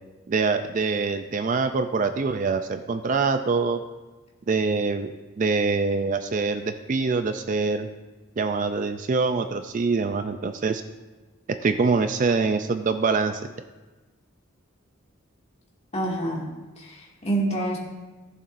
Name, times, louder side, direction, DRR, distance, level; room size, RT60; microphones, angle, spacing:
voice 1, 0.3-3.8 4.5-5.1 5.4-7.9 8.4-10.8 11.6-13.5, right 4 dB, 40° right, 8 dB, 0.4 m, -24 dB
voice 2, 15.9-16.4 16.8-17.8, right 2 dB, 30° left, -4 dB, 2.1 m, -27 dB
15.0 x 6.9 x 2.6 m, 1.2 s
head